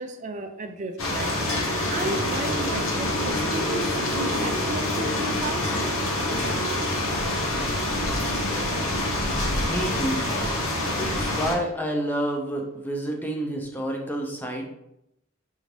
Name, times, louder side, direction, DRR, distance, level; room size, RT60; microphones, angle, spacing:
voice 1, 0.0-1.3 1.9-3.9 4.1-5.7, right 2 dB, 35° right, 6 dB, 0.4 m, -34 dB
sound 1, 1.0-11.5, left 1 dB, 85° left, 1.0 m, -26 dB
voice 2, 9.7-10.3 11.0-14.7, right 1 dB, 10° left, 1 dB, 0.6 m, -29 dB
5.1 x 2.7 x 3.2 m, 0.83 s
head